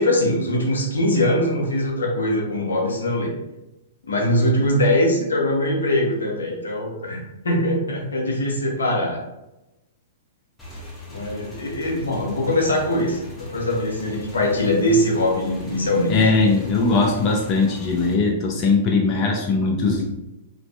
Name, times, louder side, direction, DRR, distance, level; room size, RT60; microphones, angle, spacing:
voice 1, 0.0-3.3 4.0-9.2 11.1-16.2, left 1 dB, 80° left, -2 dB, 0.7 m, -22 dB
Motorcycle / Engine, 10.6-18.1, equal, 10° left, 0.8 m, -40 dB
voice 2, 16.1-20.0, left 3 dB, 35° left, -1 dB, 0.4 m, -20 dB
2.5 x 2.2 x 2.3 m, 0.95 s
figure-of-eight pair, 110°, 0 cm